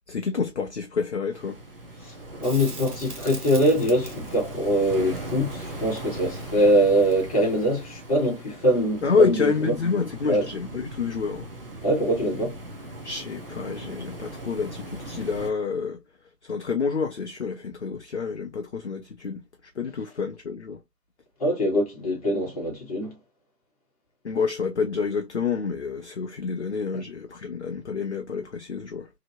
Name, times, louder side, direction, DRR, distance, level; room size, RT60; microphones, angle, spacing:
voice 1, 0.1-1.6 9.0-11.5 13.0-16.0 16.4-19.4 19.8-20.8 24.2-29.1, left 5 dB, 50° left, 0.4 m, -28 dB
sound 1, 1.3-15.5, right 1 dB, 40° right, 0.5 m, -39 dB
voice 2, 2.4-9.7 10.3-10.5 11.8-12.6 21.4-23.2, equal, 25° left, 1.1 m, -23 dB
Crackle, 2.4-7.5 10.3-10.4, right 3 dB, 65° right, 1.2 m, -43 dB
2.9 x 2.5 x 2.7 m
figure-of-eight pair, 145°, 48 cm